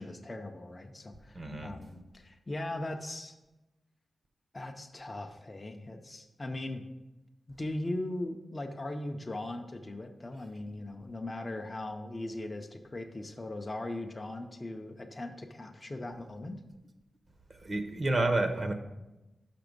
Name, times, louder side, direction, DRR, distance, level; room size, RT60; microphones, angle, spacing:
voice 1, 0.0-3.3 4.5-6.8 7.5-16.6, left 1 dB, 25° left, 4 dB, 0.5 m, -39 dB
voice 2, 1.3-1.7 17.6-18.7, right 2 dB, 35° right, 6 dB, 0.7 m, -29 dB
5.9 x 5.8 x 5.2 m, 1.0 s
wide cardioid pair, 135°, 0 cm